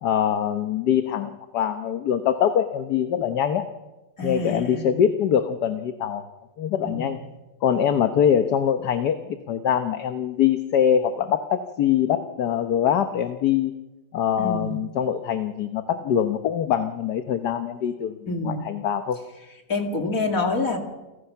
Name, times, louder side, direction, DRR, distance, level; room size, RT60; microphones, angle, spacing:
voice 1, 0.0-3.7 4.2-6.3 6.6-7.2 7.6-13.7 14.1-18.2 18.4-19.2, left 9 dB, 75° left, 7 dB, 1.5 m, -23 dB
voice 2, 4.2-4.8 6.8-7.0 14.4-14.7 18.3-18.7 19.7-20.8, left 3 dB, 55° left, 3 dB, 2.9 m, -26 dB
29.0 x 15.5 x 5.9 m, 1.1 s
omnidirectional pair, 1.8 m